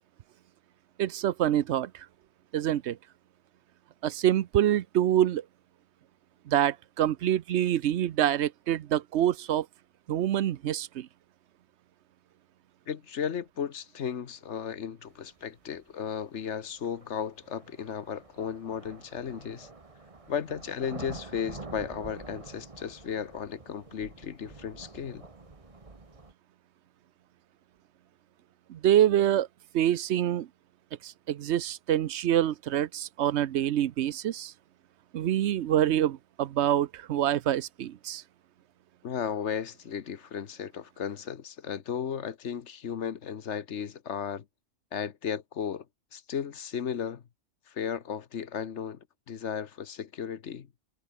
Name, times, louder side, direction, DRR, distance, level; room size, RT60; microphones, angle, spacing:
voice 1, 1.0-2.1 2.5-3.0 4.0-5.4 6.5-9.7 10.1-11.1 28.7-29.5 29.7-30.5 31.0-34.5 35.1-38.2, right 11 dB, 75° right, 0.9 m, -26 dB
voice 2, 12.9-19.7 20.3-25.2 39.0-44.4 44.9-45.8 46.1-47.2 47.7-49.0 49.3-50.7, left 7 dB, 80° left, 1.4 m, -35 dB
sound 1, 15.8-15.9 16.8-26.3, right 3 dB, 30° right, 1.6 m, -47 dB
omnidirectional pair, 1.2 m